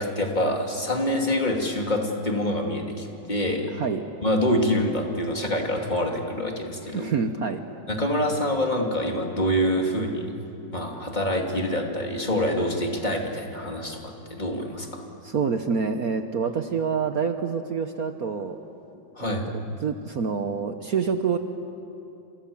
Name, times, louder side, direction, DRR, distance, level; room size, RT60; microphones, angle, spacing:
voice 1, 0.0-3.7 4.2-7.1 7.9-10.3 10.7-15.0 19.1-19.4, left 1 dB, 20° left, 1 dB, 2.9 m, -26 dB
voice 2, 3.7-4.0 6.8-7.6 15.2-18.6 19.2-19.4 19.8-21.4, right 6 dB, 55° right, 7 dB, 1.2 m, -27 dB
29.0 x 27.5 x 7.2 m, 2.8 s
omnidirectional pair, 2.3 m